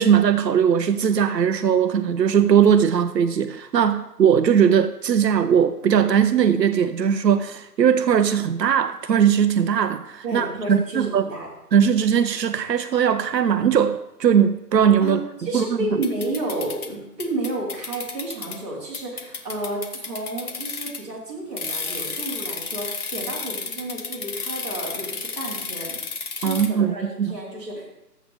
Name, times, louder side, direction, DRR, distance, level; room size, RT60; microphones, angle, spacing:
voice 1, 0.0-11.3 11.7-15.2 15.5-15.6 26.4-27.3, right 8 dB, 85° right, 10 dB, 0.7 m, -19 dB
voice 2, 10.2-11.5 15.0-26.0 26.4-28.0, right 2 dB, 25° right, -9 dB, 3.5 m, -31 dB
sound 1, 16.0-16.9 17.2-18.6 18.9-21.1 21.6-26.7, left 5 dB, 65° left, 1.2 m, -32 dB
12.5 x 8.4 x 3.5 m, 0.85 s
hypercardioid pair, 175°, 49 cm